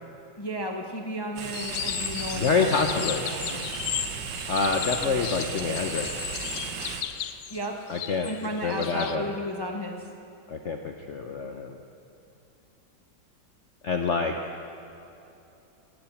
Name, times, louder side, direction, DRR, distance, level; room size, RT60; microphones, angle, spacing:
voice 1, 0.4-3.6 5.1-5.3 7.5-7.8 8.2-10.1, equal, 25° left, 2 dB, 0.5 m, -34 dB
sound 1, 1.4-7.0, right 6 dB, 75° right, 1.6 m, -35 dB
sound 2, 1.5-9.2, left 11 dB, 80° left, 1.3 m, -35 dB
voice 2, 2.3-3.2 4.5-6.3 7.9-8.3 8.6-9.2 10.5-11.8 13.8-14.3, left 4 dB, 65° left, 3 dB, 0.7 m, -27 dB
19.0 x 7.8 x 7.1 m, 2.8 s
omnidirectional pair, 2.1 m